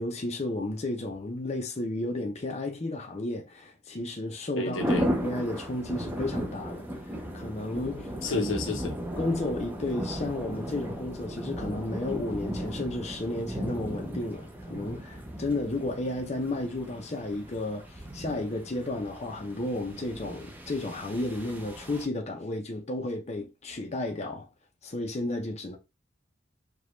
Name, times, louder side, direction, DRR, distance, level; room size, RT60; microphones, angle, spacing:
voice 1, 0.0-4.8 5.2-8.5 9.2-24.5 24.8-25.8, left 2 dB, 35° left, 0.6 m, -33 dB
voice 2, 4.6-5.1 8.2-9.0, left 2 dB, 85° left, 0.9 m, -30 dB
sound 1, 4.8-22.1, equal, 10° right, 0.6 m, -36 dB
4.9 x 2.3 x 3.1 m
head